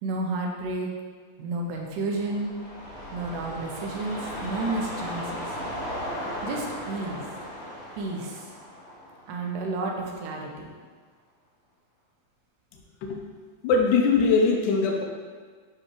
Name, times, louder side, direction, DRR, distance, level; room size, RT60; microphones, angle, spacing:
voice 1, 0.0-0.9 1.4-2.5 3.1-5.6 6.4-7.2 8.0-8.5 9.3-10.7, right 2 dB, 75° right, 0 dB, 2.1 m, -31 dB
sound 1, 1.7-10.2 10.6-10.7, equal, 40° left, 0.5 m, -37 dB
voice 2, 13.6-15.0, left 4 dB, 80° left, 0 dB, 2.1 m, -21 dB
7.3 x 5.2 x 3.2 m, 1.5 s
omnidirectional pair, 4.1 m